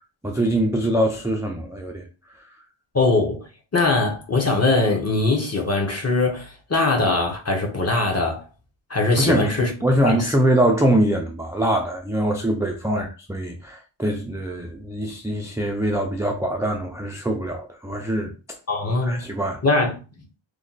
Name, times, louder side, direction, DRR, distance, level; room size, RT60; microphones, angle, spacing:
voice 1, 0.2-2.0 9.2-18.3 19.0-19.6, right 1 dB, 5° right, 0.3 m, -23 dB
voice 2, 2.9-3.5 3.7-8.4 8.9-9.7 10.0-10.3 12.9-13.0 18.7-19.3 19.6-19.9, left 3 dB, 30° left, 0.9 m, -21 dB
3.1 x 2.2 x 3.9 m
wide cardioid pair, 125°, 50 cm